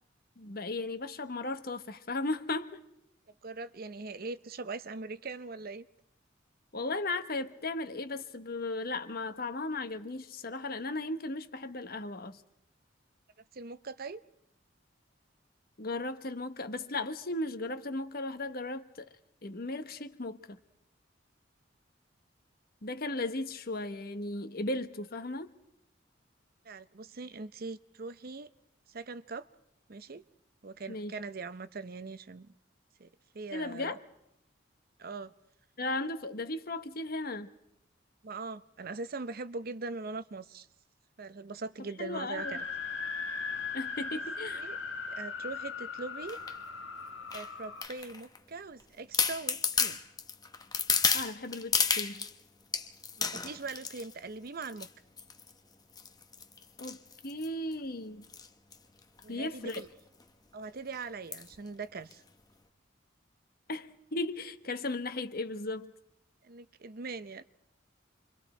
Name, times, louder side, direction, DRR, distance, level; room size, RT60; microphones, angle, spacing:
voice 1, 0.4-2.8 6.7-12.4 15.8-19.1 19.4-20.6 22.8-25.5 30.9-31.1 33.5-34.0 35.8-37.5 42.0-42.5 43.7-44.7 51.1-52.2 56.8-57.0 57.2-58.3 59.3-59.8 63.7-65.9, left 2 dB, 55° left, 1.2 m, -36 dB
voice 2, 3.4-5.9 13.5-14.2 26.6-28.5 28.9-29.5 29.9-30.2 30.6-32.5 33.0-33.1 33.3-34.0 35.0-35.3 38.2-40.7 41.2-42.6 44.5-44.8 45.1-46.4 47.3-50.0 53.2-54.9 59.2-59.9 60.5-62.2 66.4-67.4, right 3 dB, 50° right, 0.7 m, -41 dB
sound 1, 42.4-47.9, left 4 dB, 85° left, 1.6 m, -38 dB
sound 2, 46.3-46.6 47.3-48.4 48.8-48.9 49.1-52.3 52.7-54.1 54.6-54.9 55.2-55.5 56.0-57.7 58.2-58.5 58.7-58.8 59.0-59.2 59.7-59.9 60.2-60.3 61.3-61.6 62.1-62.2, left 5 dB, 20° left, 1.0 m, -32 dB
28.0 x 24.0 x 4.4 m
head